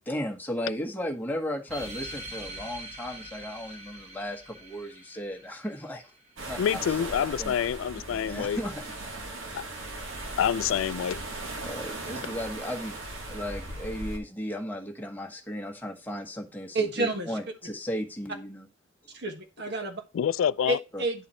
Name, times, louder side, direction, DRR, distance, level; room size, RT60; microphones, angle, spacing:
voice 1, 0.1-6.0 6.4-6.6 7.4-7.5 8.1-8.9 11.6-13.0 13.3-18.7 20.9-21.0, equal, 10° left, 1.2 m, -35 dB
sound 1, 1.7-6.7, right 1 dB, 35° right, 1.2 m, -43 dB
sound 2, 6.4-14.2, right 2 dB, 80° right, 1.6 m, -38 dB
voice 2, 6.6-8.6 9.5-9.6 10.4-11.2 20.1-20.8, left 8 dB, 80° left, 0.3 m, -27 dB
voice 3, 16.7-17.3 19.1-20.0 20.7-21.3, right 2 dB, 60° right, 1.4 m, -29 dB
9.9 x 4.1 x 4.2 m
head